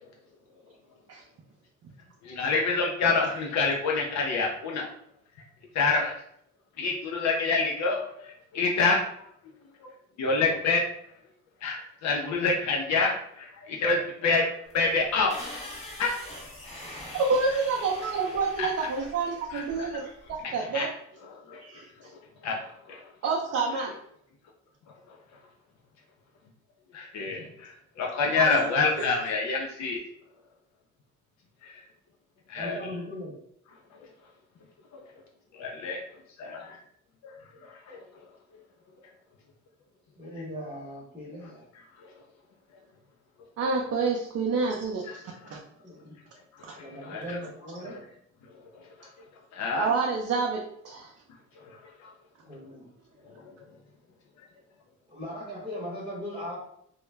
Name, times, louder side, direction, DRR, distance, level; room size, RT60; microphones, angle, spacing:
voice 1, 2.2-4.9 5.7-6.2 6.8-9.0 9.8-9.9 10.2-10.8 11.6-14.5 14.7-15.4 16.0-16.2 18.6-18.7 19.5-20.0 20.4-20.9 21.2-21.6 22.0-23.0 25.1-25.2 26.9-30.0 31.6-31.8 32.5-32.8 33.9-34.1 34.9-35.0 35.5-36.0 36.4-36.8 37.2-37.3 37.6-38.3 42.0-42.1 45.0-45.6 46.5-47.4 48.4-49.1 49.5-49.9 51.6-52.1 53.3-53.6 54.4-54.5, left 4 dB, 65° left, -1 dB, 0.5 m, -28 dB
sound 1, 14.7-20.4, left 1 dB, 20° left, 0.8 m, -43 dB
voice 2, 17.1-20.9 21.6-22.1 23.2-24.0 28.4-28.6 29.0-29.1 43.6-45.2 45.5-45.6 49.8-51.1, right 4 dB, 55° right, -1 dB, 0.5 m, -28 dB
voice 3, 32.5-33.3 40.2-41.6 45.8-46.2 46.7-48.0 52.4-52.9 55.1-56.6, equal, 15° right, -5 dB, 0.8 m, -38 dB
2.2 x 2.0 x 3.2 m, 0.71 s
cardioid pair, 90°, 30 cm